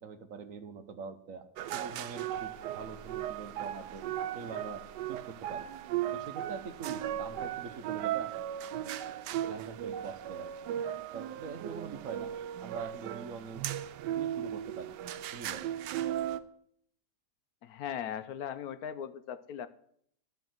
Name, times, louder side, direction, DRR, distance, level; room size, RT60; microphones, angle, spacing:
voice 1, 0.0-1.5 1.7-4.1 4.3-5.7 6.1-8.3 9.4-10.5 11.1-12.3 12.6-13.7 14.1-14.9 15.3-15.7, right 5 dB, 60° right, 10 dB, 1.1 m, -44 dB
sound 1, 1.6-16.4, right 11 dB, 85° right, 1.2 m, -37 dB
voice 2, 17.6-19.7, left 9 dB, 70° left, 12 dB, 1.0 m, -38 dB
13.0 x 5.2 x 7.7 m, 0.68 s
omnidirectional pair, 1.8 m